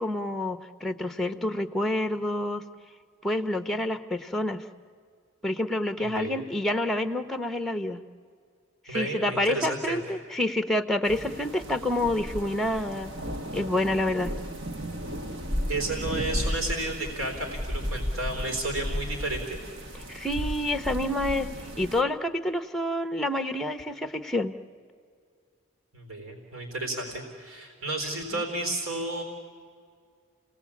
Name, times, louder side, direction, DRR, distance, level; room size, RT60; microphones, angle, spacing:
voice 1, 0.0-2.6 3.2-4.6 5.4-8.0 8.9-13.1 13.5-14.3 20.1-21.5 21.8-24.5 28.3-28.4, left 1 dB, ahead, 9 dB, 0.8 m, -28 dB
voice 2, 6.0-6.4 8.9-10.0 15.7-19.6 25.9-29.2, right 2 dB, 80° right, 3 dB, 3.9 m, -32 dB
sound 1, 11.0-22.0, equal, 60° right, 1.4 m, -34 dB
29.5 x 18.5 x 8.5 m, 2.2 s
head